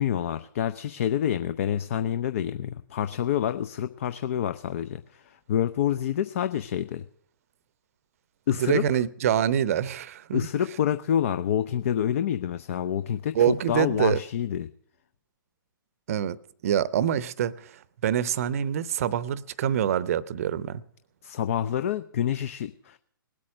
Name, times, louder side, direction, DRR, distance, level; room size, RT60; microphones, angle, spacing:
voice 1, 0.0-7.1 8.5-8.8 10.3-14.7 21.2-23.0, left 10 dB, 40° left, 0.5 m, -27 dB
voice 2, 8.6-10.5 13.3-14.2 16.1-16.4 16.6-20.8, right 9 dB, 40° right, 0.7 m, -25 dB
19.5 x 8.5 x 6.2 m
figure-of-eight pair, 125°, 12 cm